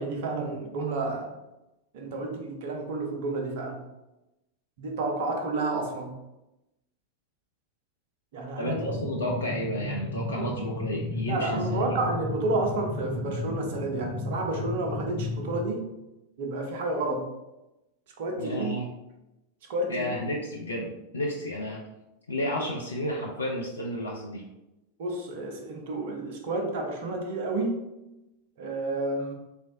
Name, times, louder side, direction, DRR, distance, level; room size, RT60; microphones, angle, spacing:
voice 1, 0.0-1.3 1.9-3.8 4.8-6.2 8.3-9.0 10.4-10.5 11.2-15.9 16.4-17.3 18.2-18.7 19.7-20.1 25.0-27.8 28.6-29.3, right 2 dB, 55° right, 2 dB, 0.6 m, -30 dB
voice 2, 8.6-11.9 18.4-18.9 19.9-21.8 22.3-24.4, left 1 dB, 75° left, -1 dB, 0.4 m, -32 dB
sound 1, 8.6-15.7, left 2 dB, 15° right, 0.6 m, -34 dB
3.3 x 3.0 x 2.5 m, 0.95 s
figure-of-eight pair, 90°, 0 cm